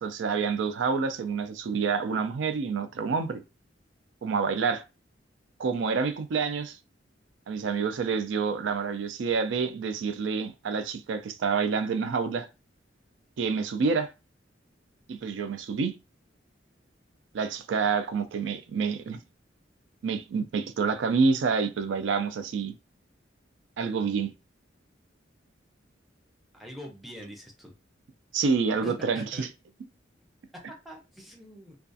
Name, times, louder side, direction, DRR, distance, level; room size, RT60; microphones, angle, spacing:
voice 1, 0.0-3.4 4.2-4.8 5.6-6.8 7.5-12.5 13.4-14.1 15.1-16.0 17.3-19.2 20.0-22.7 23.8-24.3 28.3-29.5, right 5 dB, 75° right, 0.4 m, -28 dB
voice 2, 26.5-27.7 28.8-29.5 30.8-31.8, equal, ahead, 0.5 m, -44 dB
2.4 x 2.2 x 2.5 m
head